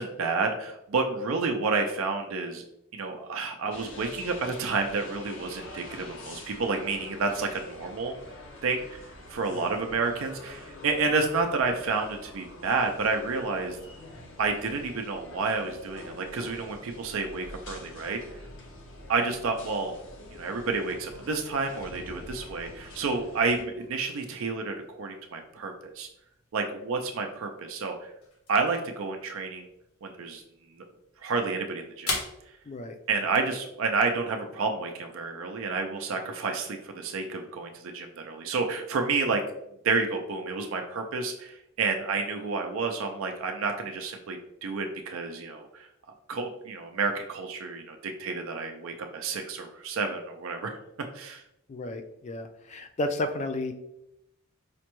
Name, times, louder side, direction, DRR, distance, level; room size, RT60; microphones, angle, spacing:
voice 1, 0.0-2.6 2.9-8.1 8.6-9.0 9.3-13.8 14.4-18.2 19.1-20.0 20.3-26.1 26.5-28.1 28.5-29.7 30.0-30.4 30.8-30.9 31.2-32.1 33.1-39.4 39.8-45.9 46.3-50.8 51.1-51.4, right 4 dB, 65° right, 4 dB, 0.4 m, -30 dB
sound 1, 3.7-23.6, left 1 dB, 60° left, 0.7 m, -46 dB
sound 2, 22.7-34.2, left 3 dB, 85° left, 0.9 m, -43 dB
voice 2, 51.7-53.7, left 2 dB, 30° left, 7 dB, 0.3 m, -32 dB
4.9 x 2.2 x 2.9 m, 0.83 s
head